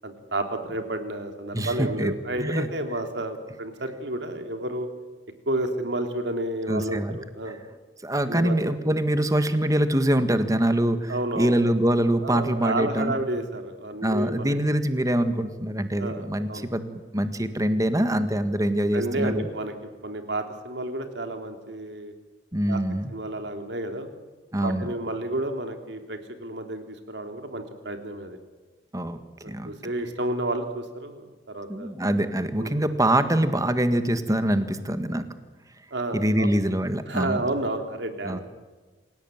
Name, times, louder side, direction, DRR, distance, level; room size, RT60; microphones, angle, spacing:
voice 1, 0.0-4.9 5.5-7.6 8.3-9.0 11.1-11.6 12.2-14.6 16.0-16.7 18.9-19.7 20.0-22.1 22.7-22.8 23.1-24.1 24.6-28.4 29.4-31.9 32.6-32.8 35.9-36.5 37.1-38.4, right 1 dB, 75° right, 6 dB, 3.4 m, -31 dB
voice 2, 1.5-2.1 2.4-2.7 6.7-7.2 8.0-13.2 14.0-19.5 22.5-23.1 24.5-24.9 28.9-29.2 29.5-29.7 31.7-35.3 36.1-37.4 38.2-38.4, right 1 dB, 20° right, 9 dB, 1.7 m, -24 dB
27.5 x 17.0 x 9.1 m, 1.3 s
head